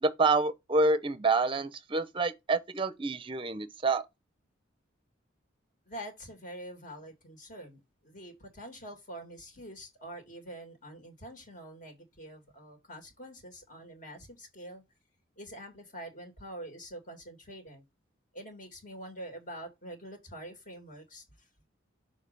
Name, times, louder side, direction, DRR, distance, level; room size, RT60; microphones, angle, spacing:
voice 1, 0.0-4.0, right 3 dB, 25° right, 0.6 m, -27 dB
voice 2, 5.8-14.8 15.4-17.8 18.3-21.5, right 1 dB, 45° left, 2.1 m, -46 dB
6.5 x 2.8 x 5.2 m
head